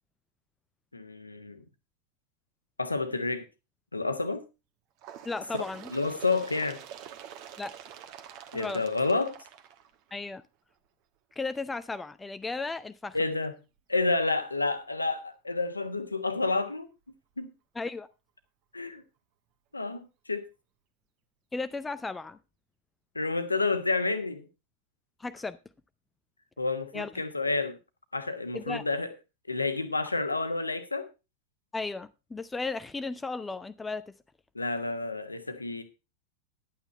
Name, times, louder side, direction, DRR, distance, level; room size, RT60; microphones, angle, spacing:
voice 1, 0.9-1.6 2.8-3.4 3.9-4.4 5.5-5.6 5.9-6.8 8.5-9.4 13.1-13.5 13.9-16.9 17.4-17.5 18.7-19.0 19.7-20.4 23.1-24.4 26.6-27.8 28.1-29.1 29.5-31.1 34.5-35.8, left 3 dB, 80° left, 1.2 m, -29 dB
Bird, 5.0-10.4 11.3-11.4 11.8-11.9 12.8-12.9 13.8-13.9 14.8-14.9, right 10 dB, 40° right, 1.2 m, -47 dB
voice 2, 5.2-5.9 7.6-7.7 8.5-8.8 10.1-10.4 11.4-13.2 17.8-18.1 21.5-22.4 25.2-25.6 26.9-27.2 28.5-28.8 31.7-34.1, left 3 dB, 10° left, 0.5 m, -35 dB
11.0 x 8.9 x 4.3 m
figure-of-eight pair, 90°, 0 cm